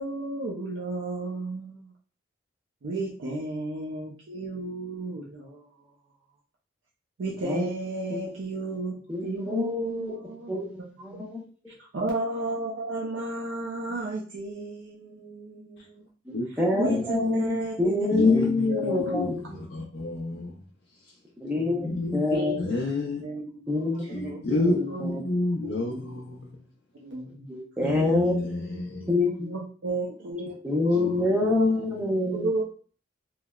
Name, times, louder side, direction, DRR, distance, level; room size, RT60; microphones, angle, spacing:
voice 1, 0.0-1.9 2.8-5.7 7.2-11.2 11.8-16.1 16.8-18.1 18.7-19.3 19.9-20.1 22.2-25.0 25.6-25.8 27.0-27.5 28.7-29.0 29.3-30.6 30.9-31.3 32.3-32.6, right 1 dB, 90° right, 0.5 m, -33 dB
voice 2, 9.1-10.1 10.5-10.6 11.0-11.4 16.3-19.6 21.4-22.5 23.7-24.2 24.6-25.2 27.5-28.4 29.1-29.5 30.6-32.5, left 2 dB, 10° right, 0.6 m, -26 dB
voice 3, 18.1-20.5 21.6-22.3 22.6-23.2 23.7-24.7 25.0-26.5 27.8-29.1 30.8-32.0, left 2 dB, 65° left, 0.4 m, -30 dB
3.0 x 2.0 x 2.3 m
head